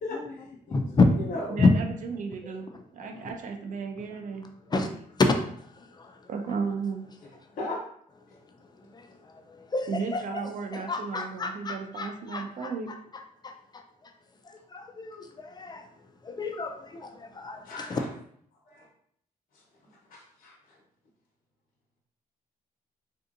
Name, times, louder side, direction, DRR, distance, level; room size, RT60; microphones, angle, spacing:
voice 1, 0.0-0.8 1.2-1.7 7.5-7.8 17.6-18.0 18.7-18.9 19.5-19.6 20.1-20.8, left 2 dB, 65° left, -7 dB, 1.1 m, -37 dB
voice 2, 0.7-1.7 2.4-3.3 4.0-4.2 4.7-4.9 5.2-6.3 8.3-10.4 10.7-14.1 14.4-15.9 16.2-18.0, left 3 dB, 25° left, 5 dB, 0.3 m, -30 dB
voice 3, 1.5-1.8 2.1-2.7 2.9-4.4 4.7-4.9 6.3-7.0 9.9-12.9, right 5 dB, 55° right, 4 dB, 0.6 m, -34 dB
3.5 x 2.6 x 2.6 m, 0.65 s
cardioid pair, 105°, 15 cm